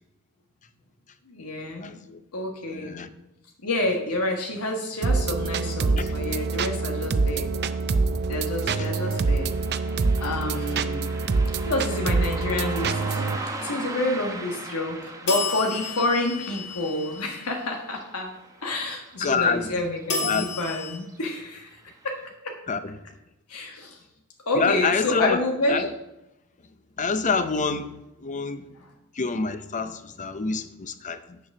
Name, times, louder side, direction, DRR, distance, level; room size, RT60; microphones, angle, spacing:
voice 1, 1.3-2.0 2.3-3.1 3.6-7.5 8.3-9.5 10.2-11.1 11.6-13.2 13.6-18.3 18.6-21.8 22.0-22.2 22.4-22.6 23.5-24.0 24.5-25.8, left 2 dB, 90° left, 1.4 m, -28 dB
voice 2, 1.8-2.2 2.7-3.1 6.0-6.1 8.7-9.0 19.2-19.7 20.2-20.5 22.7-23.0 24.5-25.4 25.7-25.9 27.0-28.7 29.1-31.4, left 4 dB, 35° left, 0.6 m, -27 dB
sound 1, 5.0-13.4, right 4 dB, 50° right, 0.5 m, -25 dB
Car passing by, 8.8-19.7 20.0-20.1 21.0-21.2 21.6-21.7 22.2-22.3, right 2 dB, 15° right, 0.9 m, -39 dB
elevator bell dings closeup nice, 15.3-17.5 20.1-21.0, left 4 dB, 55° left, 1.9 m, -31 dB
7.5 x 6.9 x 6.0 m
head